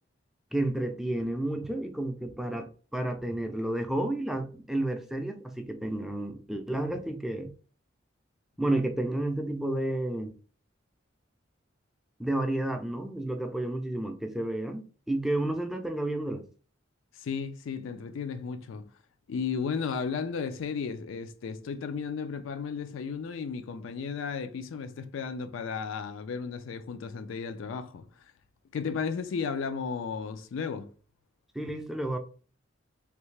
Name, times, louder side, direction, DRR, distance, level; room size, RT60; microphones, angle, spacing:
voice 1, 0.5-7.5 8.6-10.4 12.2-16.4 31.6-32.2, right 1 dB, ahead, 0.3 m, -31 dB
voice 2, 17.1-18.9 19.3-28.2 28.7-30.9, left 5 dB, 85° left, 0.4 m, -34 dB
3.3 x 2.7 x 3.2 m
head